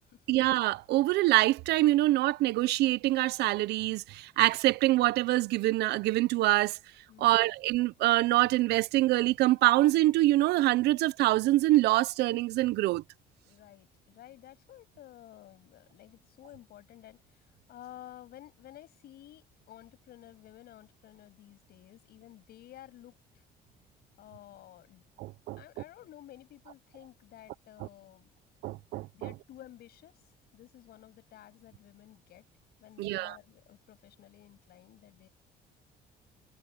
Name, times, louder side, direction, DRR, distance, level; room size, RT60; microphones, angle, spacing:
voice 1, 0.3-6.8 7.2-13.0 25.2-25.6 28.6-29.3 33.0-33.4, right 17 dB, 80° right, 0.7 m, -25 dB
voice 2, 7.1-7.5 13.4-23.4 24.2-25.0 25.6-28.3 29.1-32.4 32.8-35.3, left 13 dB, 70° left, 7.3 m, -53 dB
cardioid pair, 110°, 17 cm